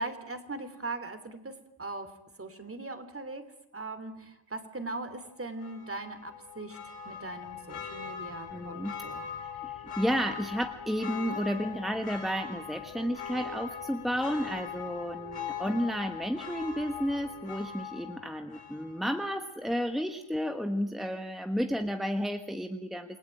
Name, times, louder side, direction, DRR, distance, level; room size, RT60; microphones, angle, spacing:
voice 1, 0.0-1.5 1.8-2.1 2.4-3.4 3.7-6.8 7.0-9.2, right 2 dB, 25° right, 10 dB, 2.9 m, -39 dB
Church bell, 5.6-19.2 19.6-19.7, left 7 dB, 90° left, 5.0 m, -41 dB
voice 2, 8.5-9.0 9.6-23.2, equal, ahead, 6 dB, 1.3 m, -32 dB
29.0 x 21.0 x 9.0 m, 0.82 s
wide cardioid pair, 145°, 49 cm